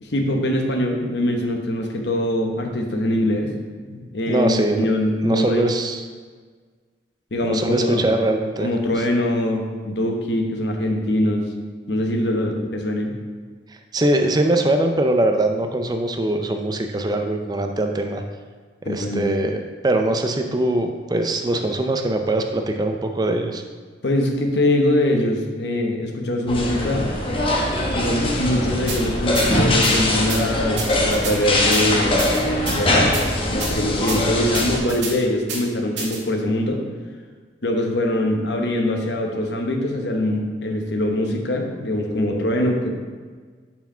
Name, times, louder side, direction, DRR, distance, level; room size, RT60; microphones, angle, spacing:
voice 1, 0.0-3.5 3.9-5.7 7.3-8.1 8.6-11.5 11.9-13.1 18.8-19.3 24.0-27.1 27.9-32.3 32.6-33.2 33.5-36.8 37.6-43.0, left 1 dB, 70° left, 3 dB, 1.0 m, -23 dB
voice 2, 4.3-4.9 5.2-6.0 7.4-8.7 9.0-9.1 13.9-18.2 18.9-23.6, right 1 dB, 20° right, 5 dB, 0.4 m, -22 dB
sound 1, 26.5-34.8, left 1 dB, 30° left, 0.8 m, -22 dB
sound 2, 28.9-29.0 29.3-29.5 29.8-29.9 30.3-30.4 30.8-31.3 31.7-31.8 32.2-32.8 33.1-33.2 33.6-33.7 34.1-34.2 34.5-35.1 35.5-35.6 36.0-36.2, right 4 dB, 80° right, 1.7 m, -29 dB
5.8 x 4.7 x 5.5 m, 1.5 s
head